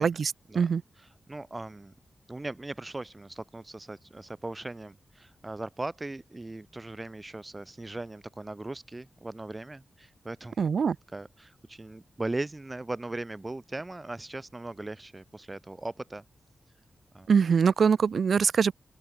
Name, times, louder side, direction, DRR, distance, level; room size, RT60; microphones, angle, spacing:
voice 1, 0.0-0.8 10.6-11.0 17.3-18.7, right 6 dB, 65° right, 1.8 m, -23 dB
voice 2, 1.0-1.9 2.3-10.7 11.1-16.2 17.1-17.3, right 2 dB, 20° right, 2.7 m, -39 dB
open air
wide cardioid pair, 170°, 0 cm